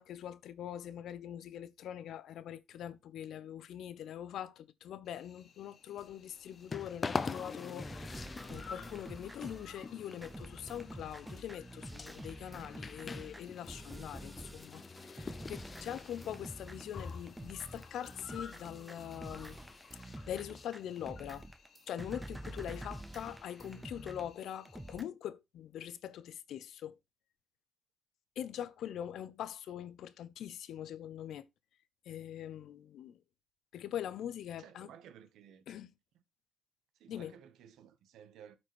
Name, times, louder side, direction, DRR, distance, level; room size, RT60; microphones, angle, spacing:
voice 1, 0.0-8.1 8.5-19.6 19.9-21.5 21.9-27.0 28.4-31.5 32.1-33.2 33.7-34.9 35.7-35.9 37.1-37.3, left 10 dB, 75° left, 0.6 m, -43 dB
Cricket, 5.0-25.0, left 5 dB, 55° left, 1.5 m, -57 dB
sound 1, 6.0-21.1, left 4 dB, 35° left, 0.5 m, -45 dB
sound 2, 7.3-25.0, right 1 dB, 10° right, 0.7 m, -48 dB
voice 2, 34.6-35.8 36.1-36.2 36.9-38.6, right 8 dB, 85° right, 0.9 m, -56 dB
13.0 x 4.5 x 3.0 m
cardioid pair, 90°, 0 cm